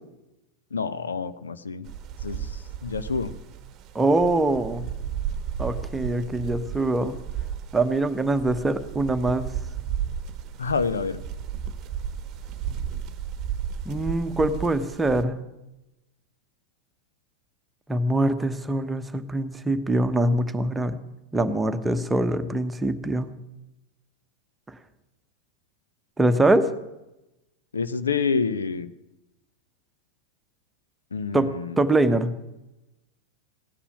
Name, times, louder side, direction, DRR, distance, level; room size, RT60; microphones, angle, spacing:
voice 1, 0.7-1.9 2.2-2.5 2.8-3.3 10.6-11.2 27.7-28.9 31.1-31.8, left 5 dB, 70° left, 12 dB, 0.8 m, -27 dB
sound 1, 1.9-15.2, right 8 dB, 35° right, 1.1 m, -34 dB
voice 2, 3.9-4.8 5.6-7.1 7.7-9.5 13.8-15.4 17.9-21.0 21.3-23.3 26.2-26.7 31.3-32.3, right 2 dB, 10° right, 9 dB, 1.1 m, -23 dB
16.5 x 10.0 x 8.5 m, 0.95 s
figure-of-eight pair, 90°, 0 cm